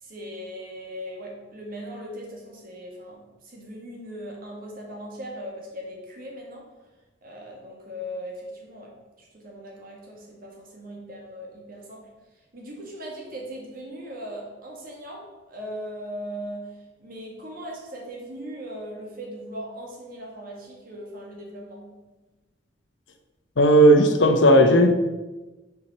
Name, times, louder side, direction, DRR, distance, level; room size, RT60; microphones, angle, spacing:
voice 1, 0.0-6.7 7.2-12.1 12.5-21.9, equal, 50° right, -1 dB, 1.9 m, -39 dB
voice 2, 23.6-24.9, equal, 70° left, 6 dB, 0.9 m, -15 dB
7.0 x 4.8 x 5.5 m, 1.1 s
head